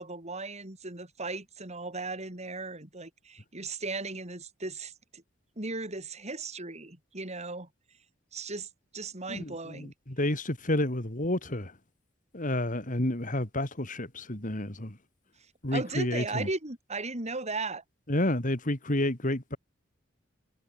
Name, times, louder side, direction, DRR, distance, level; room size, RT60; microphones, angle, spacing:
voice 1, 0.0-5.2 5.6-7.7 8.3-9.9 15.7-17.8, right 3 dB, 35° right, 5.1 m, -37 dB
voice 2, 9.3-11.7 12.3-15.0 15.6-16.5 18.1-19.6, left 1 dB, 40° left, 3.6 m, -30 dB
head